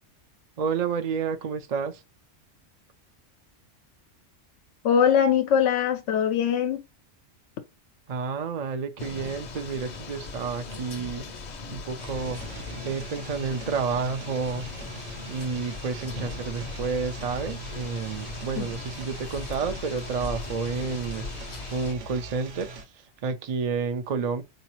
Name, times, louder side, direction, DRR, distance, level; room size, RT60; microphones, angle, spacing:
voice 1, 0.6-2.0 8.1-11.3 11.7-12.4 12.8-14.7 15.3-24.4, right 5 dB, 60° right, 0.4 m, -30 dB
voice 2, 4.8-6.8 18.6-18.7, left 8 dB, 90° left, 0.9 m, -22 dB
sound 1, 9.0-21.9, left 3 dB, 45° left, 0.6 m, -39 dB
sound 2, 12.0-22.9, right 2 dB, 85° right, 1.1 m, -42 dB
3.9 x 2.7 x 3.0 m
omnidirectional pair, 1.2 m